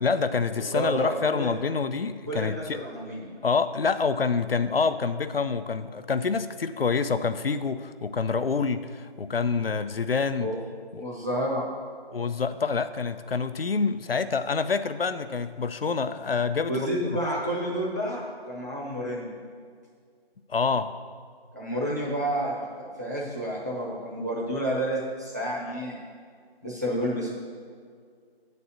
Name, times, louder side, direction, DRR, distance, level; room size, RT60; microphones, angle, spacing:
voice 1, 0.0-2.8 3.4-10.5 10.9-11.0 12.1-17.2 20.5-20.9, left 5 dB, 70° left, 11 dB, 0.6 m, -27 dB
voice 2, 0.5-1.5 2.3-3.3 10.4-10.5 11.0-11.6 16.7-19.3 21.5-26.0 26.6-27.3, equal, 15° right, -6 dB, 0.9 m, -30 dB
8.3 x 4.2 x 7.0 m, 2.1 s
figure-of-eight pair, 170°, 31 cm